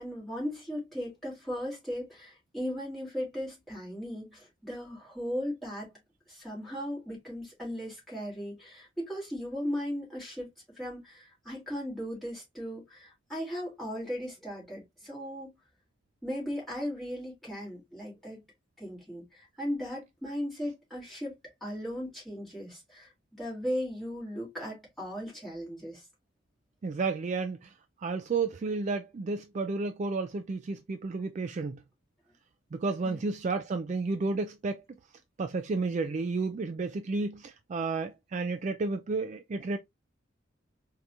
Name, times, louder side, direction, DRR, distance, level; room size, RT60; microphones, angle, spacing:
voice 1, 0.0-5.9 6.3-10.5 10.7-15.5 16.2-18.4 18.8-21.3 21.6-26.1 33.0-33.2, equal, ahead, 2.8 m, -37 dB
voice 2, 26.8-27.7 28.0-31.8 32.7-35.0 35.4-39.8, right 3 dB, 35° right, 0.3 m, -32 dB
4.5 x 2.8 x 2.5 m
head